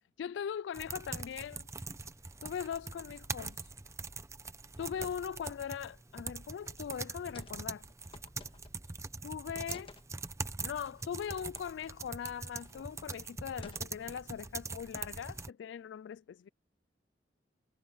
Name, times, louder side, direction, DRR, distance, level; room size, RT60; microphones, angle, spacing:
voice 1, 0.2-1.7 2.4-3.6 4.8-7.9 9.2-9.9 10.6-16.5, left 8 dB, 75° left, 0.3 m, -40 dB
sound 1, 0.7-15.5, right 4 dB, 15° right, 0.7 m, -43 dB
sound 2, 7.3-7.6 7.9-9.0 9.7-10.1 11.5-11.7 12.0-12.1 12.6-12.9 13.6-14.2 14.7-15.2, left 3 dB, 30° left, 1.6 m, -54 dB
head